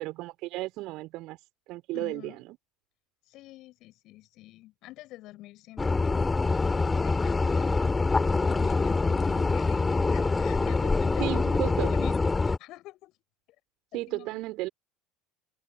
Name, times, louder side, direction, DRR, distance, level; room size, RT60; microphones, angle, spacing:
voice 1, 0.0-1.4 1.7-2.4 11.2-12.0 13.9-14.7, right 19 dB, 50° right, 4.3 m, -33 dB
voice 2, 1.9-2.4 3.3-7.7 8.5-11.6 11.9-12.1 12.4-13.1 13.9-14.4, left 17 dB, 50° left, 7.8 m, -47 dB
sound 1, 5.8-12.6, left 3 dB, 15° left, 4.1 m, -25 dB
figure-of-eight pair, 70°, 0 cm